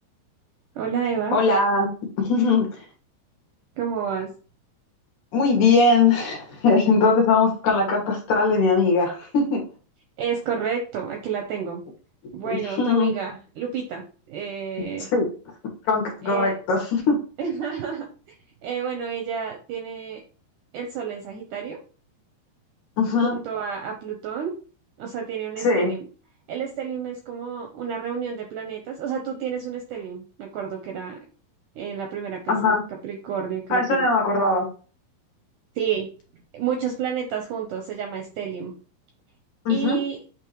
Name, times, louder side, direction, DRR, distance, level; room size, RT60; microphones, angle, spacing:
voice 1, 0.8-1.4 3.8-4.3 10.2-11.8 12.3-15.1 16.2-16.5 17.4-18.4 18.6-20.2 20.7-21.8 23.2-24.5 25.0-26.0 26.5-31.2 31.8-32.8 33.0-34.1 35.8-36.1 36.5-38.7 39.7-40.2, right 7 dB, 75° right, 3 dB, 1.9 m, -30 dB
voice 2, 1.3-1.9 2.2-2.7 5.3-9.6 12.4-13.1 14.8-14.9 15.1-15.2 15.9-17.2 23.0-23.3 25.6-25.9 32.5-32.8 33.7-34.7 39.7-40.0, left 3 dB, 60° left, 0 dB, 2.7 m, -20 dB
8.5 x 3.6 x 3.0 m, 0.38 s
omnidirectional pair, 4.6 m